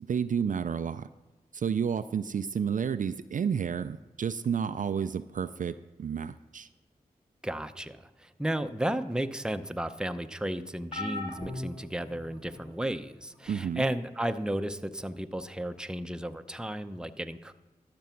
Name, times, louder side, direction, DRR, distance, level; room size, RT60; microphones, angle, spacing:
voice 1, 0.1-1.1 1.5-6.7 13.5-13.9, right 7 dB, 55° right, 12 dB, 0.4 m, -31 dB
voice 2, 7.4-17.5, right 1 dB, 5° right, 9 dB, 0.7 m, -33 dB
sound 1, 10.9-12.7 13.5-13.7 15.0-15.1, left 2 dB, 30° left, 1.8 m, -39 dB
12.5 x 6.0 x 5.8 m, 1.1 s
cardioid pair, 45°, 16 cm